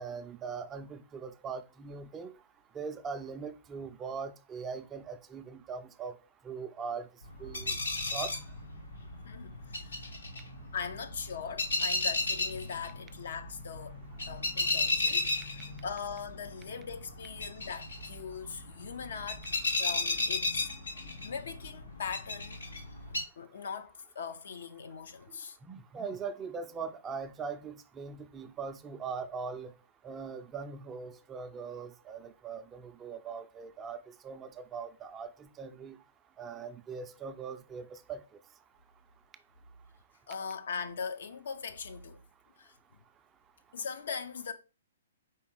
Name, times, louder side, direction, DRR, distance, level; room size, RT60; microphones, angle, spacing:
voice 1, 0.0-2.3 2.7-6.1 6.4-7.1 7.4-7.8 8.1-8.3 25.6-29.7 30.0-34.0 34.2-36.0 36.4-38.2, right 5 dB, 20° right, 0.4 m, -40 dB
sound 1, 7.2-23.2, left 2 dB, 80° left, 1.2 m, -35 dB
voice 2, 9.2-10.1 10.7-14.0 14.3-19.5 19.8-20.7 21.2-22.6 23.4-25.6 40.3-42.2 42.6-42.7 43.7-44.5, left 6 dB, 60° left, 0.6 m, -40 dB
4.8 x 3.4 x 3.0 m
figure-of-eight pair, 120°, 0 cm